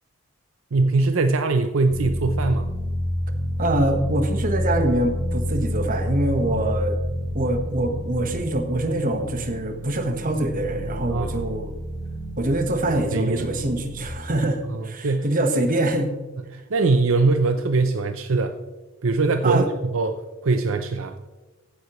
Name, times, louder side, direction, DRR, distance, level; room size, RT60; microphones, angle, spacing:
voice 1, 0.7-2.7 6.5-6.7 11.1-11.5 13.1-13.5 14.4-15.3 16.5-18.6 19.0-21.2, right 3 dB, 65° right, 7 dB, 0.6 m, -22 dB
sound 1, 1.9-14.1, equal, 50° left, 3.2 m, -29 dB
voice 2, 3.6-7.0 7.3-11.7 12.4-16.1 19.4-19.7, right 1 dB, 40° right, 6 dB, 1.2 m, -24 dB
14.5 x 9.6 x 3.1 m, 1.2 s
head